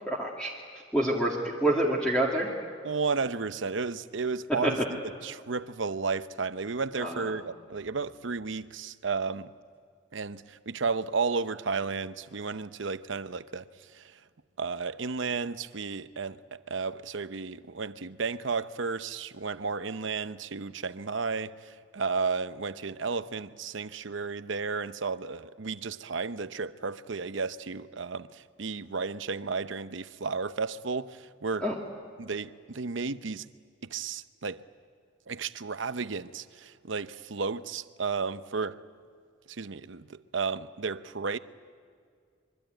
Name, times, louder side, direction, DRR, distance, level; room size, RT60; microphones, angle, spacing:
voice 1, 0.1-0.5 0.9-2.5 4.6-4.9 7.0-7.4 31.6-31.8, right 1 dB, 5° left, 2.2 m, -27 dB
voice 2, 2.8-4.8 5.2-9.5 10.1-13.7 13.9-14.1 14.6-31.7 32.2-33.5 33.8-34.6 35.3-38.8 39.5-41.4, right 4 dB, 70° right, 0.8 m, -33 dB
25.5 x 23.5 x 9.1 m
head